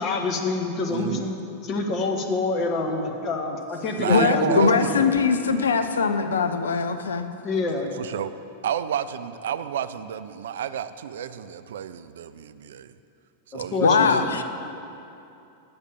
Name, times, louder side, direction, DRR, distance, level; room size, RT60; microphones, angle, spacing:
voice 1, 0.0-1.3 1.6-5.1 7.4-7.9 13.5-14.2, left 3 dB, 35° left, 3 dB, 1.1 m, -27 dB
voice 2, 0.9-1.3 4.0-5.0 8.0-8.3 8.6-12.9 13.5-14.4, right 9 dB, 60° right, 13 dB, 0.3 m, -30 dB
voice 3, 4.1-7.3 13.8-14.4, left 5 dB, 70° left, 8 dB, 0.5 m, -21 dB
8.7 x 6.5 x 6.8 m, 2.7 s
figure-of-eight pair, 90°, 0 cm